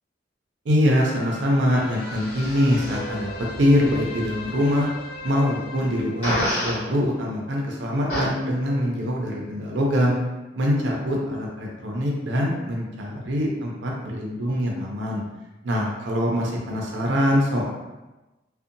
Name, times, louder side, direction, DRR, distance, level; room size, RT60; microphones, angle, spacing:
voice 1, 0.7-3.3 3.6-4.9 5.2-10.2 10.5-15.2 15.6-17.7, equal, 80° right, -2 dB, 0.5 m, -23 dB
sound 1, 1.0-7.6 8.0-8.1, left 2 dB, 50° left, 0.4 m, -38 dB
Fart, 6.2-6.8 8.1-8.3, equal, 35° left, 1.4 m, -24 dB
2.6 x 2.1 x 2.5 m, 1.1 s
head